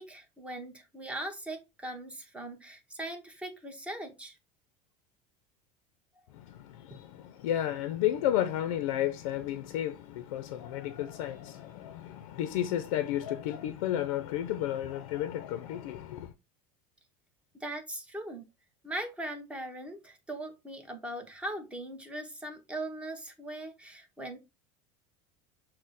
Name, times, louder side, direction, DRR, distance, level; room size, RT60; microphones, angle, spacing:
voice 1, 0.0-4.4 17.6-18.4 18.8-24.4, right 1 dB, 5° right, 0.9 m, -40 dB
voice 2, 6.4-16.3, left 12 dB, 90° left, 0.5 m, -32 dB
6.3 x 2.1 x 3.9 m
supercardioid pair, 140°, 17 cm